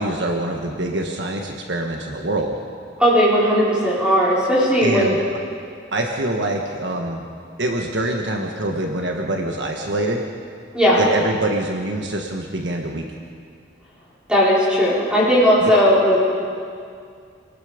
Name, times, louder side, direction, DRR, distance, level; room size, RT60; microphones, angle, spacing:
voice 1, 0.0-2.5 4.8-5.2 5.9-7.2 7.6-10.3 10.9-13.1 15.6-15.7, right 1 dB, 60° right, 1 dB, 1.5 m, -25 dB
voice 2, 3.0-5.1 10.7-11.0 14.3-16.2, equal, 5° right, -9 dB, 5.0 m, -16 dB
27.0 x 19.0 x 5.2 m, 2.3 s
head